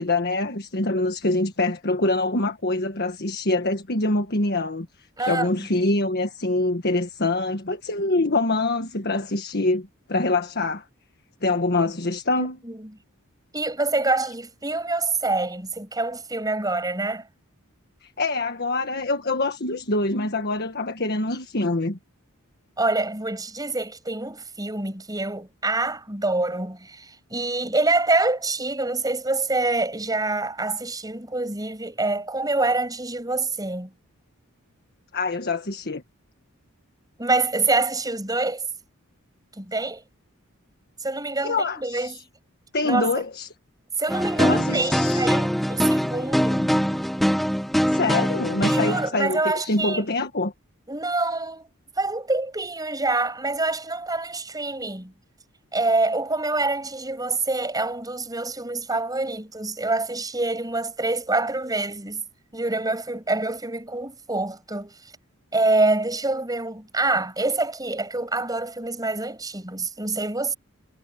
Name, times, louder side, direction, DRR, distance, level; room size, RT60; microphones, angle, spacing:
voice 1, 0.0-4.9 5.2-10.8 11.4-12.6 18.0-22.0 35.1-36.0 41.4-42.2 42.7-43.5 44.4-45.3 47.9-50.5, left 2 dB, 45° left, 1.6 m, -25 dB
voice 2, 5.2-5.5 12.4-12.9 13.5-17.3 22.8-33.9 37.2-38.7 39.6-40.0 41.0-42.2 42.8-43.1 44.0-46.8 47.9-48.0 48.6-50.0 50.9-51.7 52.0-55.1 55.7-62.2 62.5-64.9 65.5-70.5, right 2 dB, 15° right, 7.9 m, -26 dB
sound 1, 44.1-49.1, equal, ahead, 1.3 m, -23 dB
head